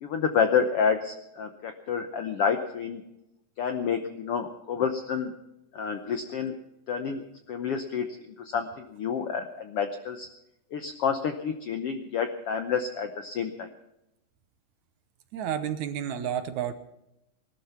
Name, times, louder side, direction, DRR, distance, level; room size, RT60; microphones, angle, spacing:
voice 1, 0.0-3.0 3.6-5.3 5.7-6.6 6.9-7.2 7.5-8.1 8.4-10.3 10.7-13.7, left 6 dB, 70° left, 7 dB, 1.4 m, -29 dB
voice 2, 15.3-16.7, right 9 dB, 70° right, 10 dB, 2.1 m, -30 dB
19.5 x 12.5 x 5.7 m, 0.87 s
omnidirectional pair, 3.9 m